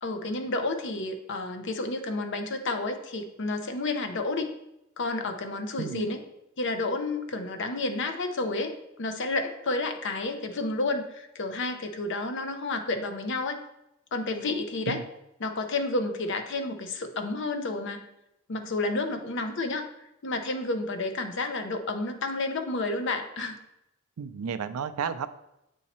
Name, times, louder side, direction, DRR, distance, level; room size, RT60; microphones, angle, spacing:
voice 1, 0.0-4.5 5.0-6.2 6.6-8.7 9.0-13.6 14.1-15.0 15.4-18.0 18.5-19.9 20.2-23.6, left 2 dB, 60° left, 7 dB, 0.7 m, -30 dB
voice 2, 5.8-6.1 14.9-15.0 24.2-25.3, right 6 dB, 85° right, 10 dB, 0.4 m, -32 dB
8.3 x 2.8 x 4.2 m, 0.85 s
head